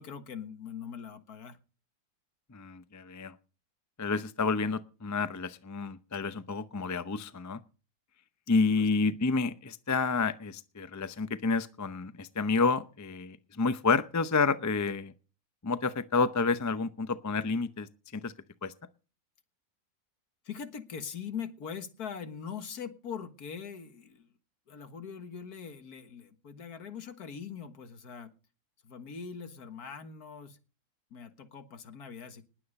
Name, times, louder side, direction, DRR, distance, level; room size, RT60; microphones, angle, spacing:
voice 1, 0.0-1.6 8.8-8.9 20.4-24.3 24.7-28.3 28.8-30.6 31.1-32.5, left 7 dB, 75° left, 2.0 m, -42 dB
voice 2, 2.5-3.3 4.0-7.6 8.5-15.1 15.6-18.3 18.6-18.7, left 4 dB, 25° left, 0.3 m, -29 dB
20.0 x 8.5 x 5.3 m
omnidirectional pair, 1.6 m